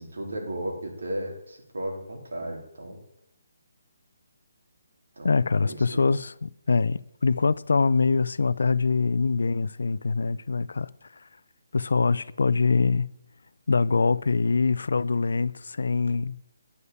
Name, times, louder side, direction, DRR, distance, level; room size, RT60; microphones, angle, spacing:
voice 1, 0.0-3.0 5.2-6.0, right 1 dB, 85° right, 3.4 m, -35 dB
voice 2, 5.2-11.3 11.7-13.1 13.7-16.4, left 4 dB, 75° left, 0.4 m, -24 dB
9.3 x 5.6 x 8.1 m
hypercardioid pair, 175°, 0 cm